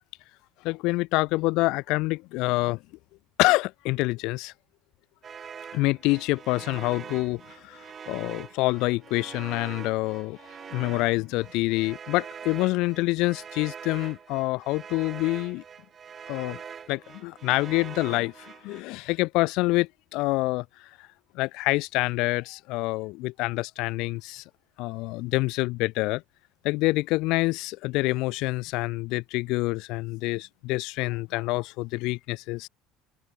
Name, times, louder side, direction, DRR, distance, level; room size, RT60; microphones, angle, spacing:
voice 1, 0.6-2.8 3.4-4.5 5.7-7.8 8.1-10.4 10.7-15.6 16.3-16.6 16.9-20.6 21.3-24.4 24.8-26.2 26.6-32.7, left 22 dB, 60° left, 1.0 m, -26 dB
sound 1, 5.2-18.8, right 7 dB, 25° right, 7.6 m, -43 dB
cardioid pair, 160°, 0 cm